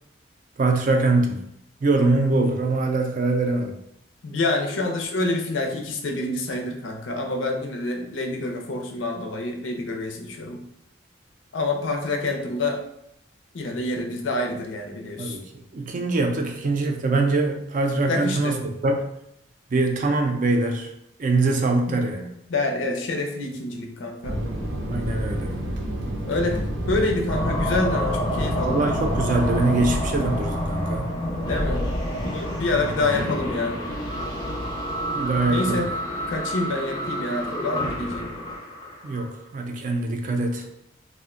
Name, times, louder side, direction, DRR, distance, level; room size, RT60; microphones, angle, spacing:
voice 1, 0.6-1.4 1.8-3.8 15.2-15.4 15.7-19.1 19.7-20.9 21.2-22.3 24.9-25.5 28.6-31.1 35.1-35.8 39.0-40.7, right 2 dB, 45° right, 3 dB, 0.4 m, -23 dB
voice 2, 4.2-10.6 11.5-12.8 13.5-15.4 18.1-18.6 21.9-22.0 22.5-24.4 26.2-26.6 26.9-28.8 31.4-31.8 32.2-33.8 35.5-35.9 36.3-38.3, left 2 dB, 85° left, 3 dB, 0.5 m, -27 dB
Fixed-wing aircraft airplane, 24.2-30.9, equal, 85° right, 0.6 m, -29 dB
sound 1, 27.3-39.3, equal, 20° left, 0.4 m, -29 dB
2.5 x 2.1 x 3.6 m, 0.78 s
head